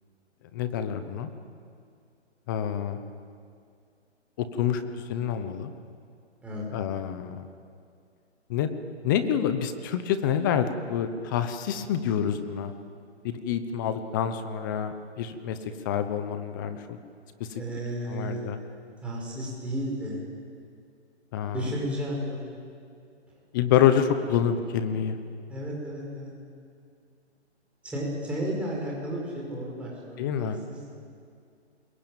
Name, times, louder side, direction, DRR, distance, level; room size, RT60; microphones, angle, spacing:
voice 1, 0.5-1.3 2.5-3.0 4.4-5.7 6.7-7.4 8.5-8.7 9.0-12.7 13.2-15.6 15.8-17.0 17.4-17.6 18.1-18.6 21.3-21.7 23.5-25.2 30.2-30.6, left 9 dB, 20° left, 10 dB, 0.9 m, -27 dB
voice 2, 17.5-18.4 19.0-20.2 21.5-22.4 25.5-26.3 27.8-30.8, equal, 5° right, -4 dB, 5.2 m, -33 dB
26.0 x 22.0 x 9.1 m, 2.3 s
hypercardioid pair, 160°, 34 cm